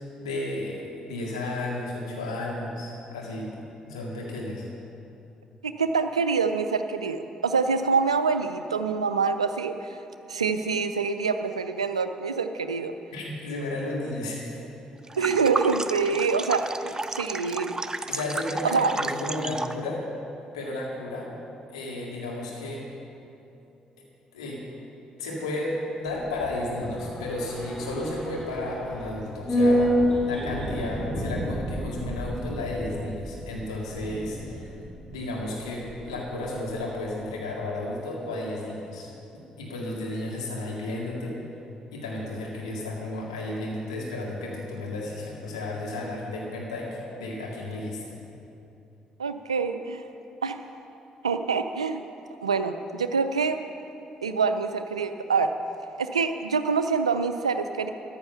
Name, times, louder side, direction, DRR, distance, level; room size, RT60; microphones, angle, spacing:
voice 1, 0.0-3.5 3.9-4.7 13.1-14.5 18.1-20.0 20.5-21.3 21.7-22.9 24.3-24.6 25.2-34.8 35.1-39.1 39.6-41.3 41.9-48.1, left 2 dB, 85° left, -3 dB, 2.1 m, -33 dB
voice 2, 5.6-10.0 10.3-12.9 15.2-17.7 18.6-19.0 49.2-50.0 50.4-50.6 51.2-52.0 52.4-53.6 54.2-55.5 56.0-57.9, right 5 dB, 90° right, 9 dB, 0.4 m, -26 dB
sound 1, 15.1-19.8, right 2 dB, 20° right, 0.6 m, -33 dB
sound 2, 26.1-36.5 36.8-36.9, equal, 20° left, 3.1 m, -29 dB
14.0 x 10.5 x 5.7 m, 2.9 s
figure-of-eight pair, 45°, 3 cm